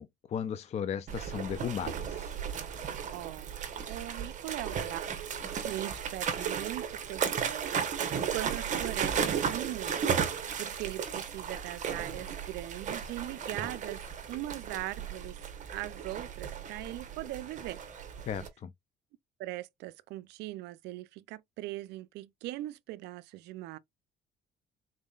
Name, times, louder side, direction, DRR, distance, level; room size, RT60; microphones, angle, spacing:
voice 1, 0.0-2.4 18.3-18.7, left 8 dB, 40° left, 0.4 m, -36 dB
sound 1, 1.1-18.5, right 7 dB, 45° right, 0.9 m, -35 dB
voice 2, 3.1-3.5 3.9-5.0 5.6-14.0 14.3-15.4 15.7-17.8 19.4-23.8, right 16 dB, 85° right, 0.4 m, -40 dB
3.9 x 3.7 x 2.3 m
cardioid pair, 110°, 17 cm